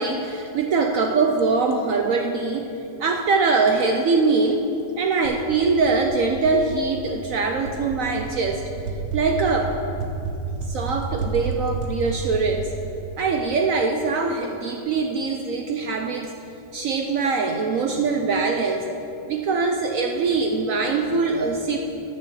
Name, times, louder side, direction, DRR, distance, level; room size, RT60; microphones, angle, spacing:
voice 1, 0.0-2.7 3.0-4.7 5.0-8.6 9.1-9.7 10.7-12.7 13.2-16.3 16.7-18.9 19.3-21.8, right 4 dB, 75° right, 3 dB, 0.7 m, -22 dB
sound 1, 5.2-13.9, right 4 dB, 55° right, 1.4 m, -32 dB
9.8 x 6.6 x 6.9 m, 2.8 s
omnidirectional pair, 2.1 m